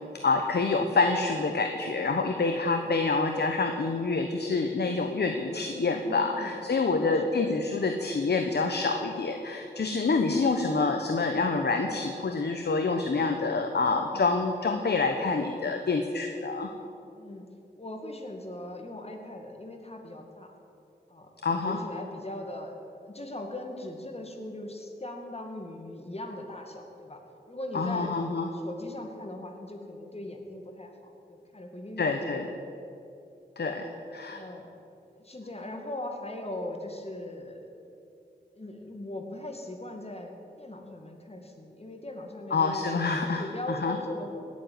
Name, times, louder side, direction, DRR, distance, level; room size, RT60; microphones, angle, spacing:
voice 1, 0.2-16.7 21.4-21.8 27.7-28.5 32.0-32.5 33.6-33.8 34.1-34.4 42.5-43.4 43.7-44.0, left 3 dB, 65° left, 5 dB, 1.1 m, -27 dB
voice 2, 5.9-6.6 6.9-7.4 10.0-10.5 14.0-14.3 17.1-17.5 17.8-20.6 21.1-21.3 21.6-22.7 23.0-27.2 27.5-28.1 28.5-32.3 33.6-33.8 34.3-34.7 35.1-37.6 38.5-44.3, left 1 dB, 35° left, 3 dB, 2.3 m, -40 dB
18.0 x 7.3 x 9.5 m, 2.7 s
cardioid pair, 55°, 18 cm